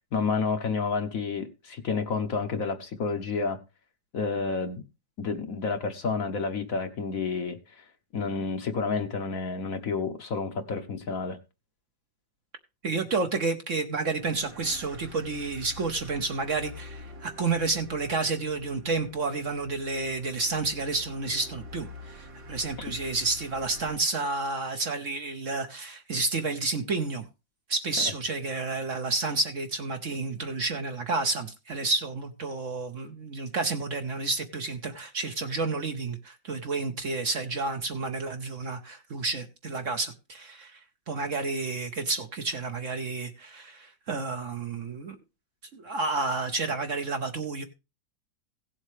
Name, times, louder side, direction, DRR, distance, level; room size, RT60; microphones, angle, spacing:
voice 1, 0.1-3.6 4.1-4.8 5.2-7.8 8.1-11.4 28.0-28.1, left 4 dB, 55° left, 1.2 m, -30 dB
voice 2, 12.8-27.2 27.7-40.8 41.1-45.2 45.7-47.6, right 3 dB, 50° right, 1.1 m, -30 dB
sound 1, 14.1-24.0, left 2 dB, 80° right, 3.2 m, -46 dB
17.0 x 7.4 x 3.2 m
omnidirectional pair, 2.0 m